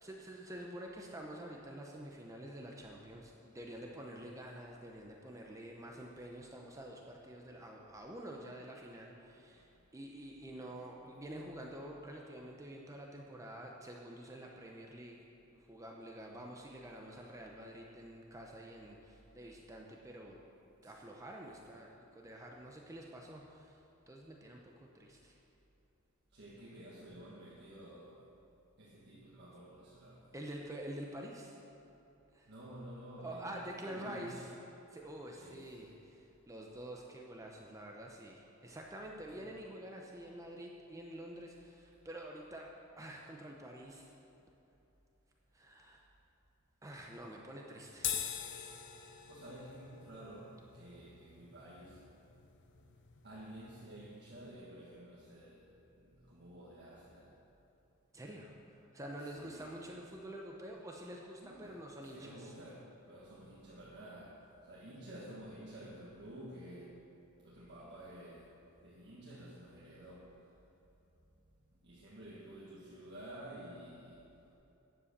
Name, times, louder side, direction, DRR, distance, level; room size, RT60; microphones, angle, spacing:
voice 1, 0.0-15.2 15.5-20.4 20.8-25.4 30.3-31.6 32.3-32.5 33.2-34.5 34.9-42.7 43.0-44.1 45.5-46.0 46.8-48.1 58.1-62.5, right 1 dB, 15° right, 0 dB, 0.7 m, -48 dB
voice 2, 26.3-28.3 28.8-30.3 32.4-34.5 35.4-35.9 39.3-39.5 49.1-52.1 53.2-55.7 56.0-57.4 59.2-59.8 61.4-67.0 67.4-68.5 68.8-70.4 71.7-74.3, right 1 dB, 55° right, -6 dB, 1.5 m, -51 dB
sound 1, 48.0-54.6, left 9 dB, 55° left, 0.7 m, -45 dB
10.0 x 7.5 x 6.7 m, 2.9 s
head